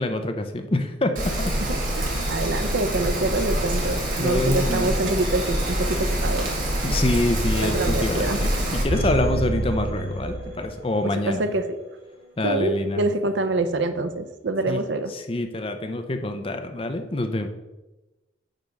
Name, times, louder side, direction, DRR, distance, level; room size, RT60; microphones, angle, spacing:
voice 1, 0.0-1.5 4.2-4.9 6.8-11.4 12.4-13.0 14.7-14.8 15.3-17.5, left 2 dB, 30° left, 7 dB, 0.6 m, -26 dB
Rain, 1.2-8.8, right 1 dB, 45° right, 1.6 m, -25 dB
voice 2, 1.7-6.5 7.5-8.4 11.1-11.8 12.4-15.1, right 2 dB, 65° right, 9 dB, 0.6 m, -26 dB
sound 1, 8.9-11.1 11.4-11.5, right 1 dB, 80° right, 2.2 m, -27 dB
9.1 x 3.5 x 5.2 m, 1.1 s
head